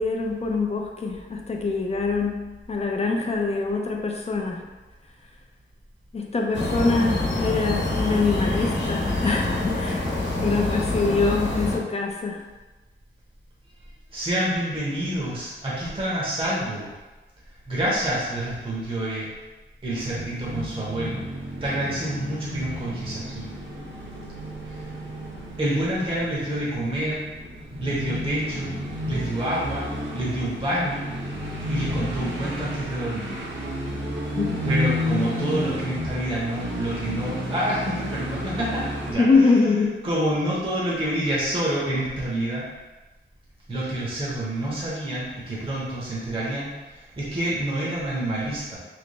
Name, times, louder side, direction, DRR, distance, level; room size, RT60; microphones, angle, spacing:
voice 1, 0.0-4.6 6.1-10.1 10.4-12.4 34.4-34.6 39.2-40.0, left 3 dB, 30° left, 1 dB, 0.5 m, -24 dB
sound 1, 6.5-11.8, left 2 dB, 60° left, 1.0 m, -26 dB
voice 2, 14.1-16.9 17.7-19.3 19.8-21.2 21.6-23.5 24.7-24.9 25.6-27.3 27.8-28.8 29.1-31.1 31.7-33.4 34.6-39.5 40.0-42.7 43.7-48.8, right 1 dB, 25° right, -6 dB, 0.8 m, -28 dB
sound 2, 20.0-39.1, left 1 dB, 70° right, 1.0 m, -32 dB
3.3 x 3.0 x 4.1 m, 1.2 s
wide cardioid pair, 150°, 20 cm